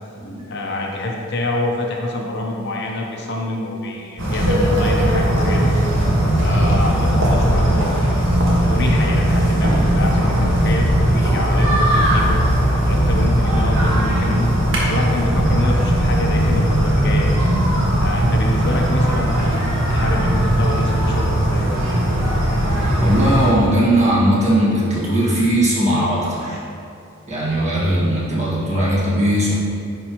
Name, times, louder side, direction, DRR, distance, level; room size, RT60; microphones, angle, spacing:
voice 1, 0.5-5.7 6.4-8.1 8.6-10.9 11.1-12.4 12.8-14.5 14.8-17.4 18.0-21.7, left 2 dB, 50° left, 0 dB, 0.7 m, -26 dB
sound 1, 4.2-23.5, equal, 65° right, 1.5 m, -18 dB
voice 2, 6.5-7.1 23.0-26.6 27.3-29.5, right 1 dB, 30° right, -7 dB, 1.7 m, -19 dB
9.7 x 5.3 x 3.0 m, 2.6 s
head